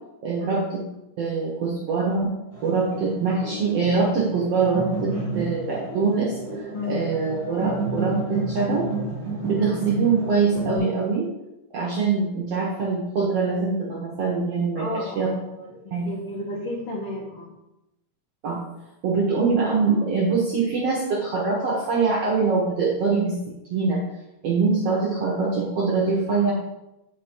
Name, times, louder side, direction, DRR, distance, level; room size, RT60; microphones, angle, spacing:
voice 1, 0.2-0.8 1.2-2.3 2.6-8.9 9.4-11.3 11.7-15.3 15.9-16.1 18.4-18.6 19.0-23.3 23.7-24.0 24.4-26.5, right 4 dB, 65° right, -3 dB, 1.5 m, -23 dB
sound 1, 2.5-10.8, right 3 dB, 15° right, 2.8 m, -31 dB
voice 2, 5.1-5.4 6.7-7.0 9.6-9.7 14.8-17.5, left 2 dB, 75° left, -2 dB, 1.3 m, -33 dB
8.3 x 5.4 x 4.5 m, 0.93 s
omnidirectional pair, 4.3 m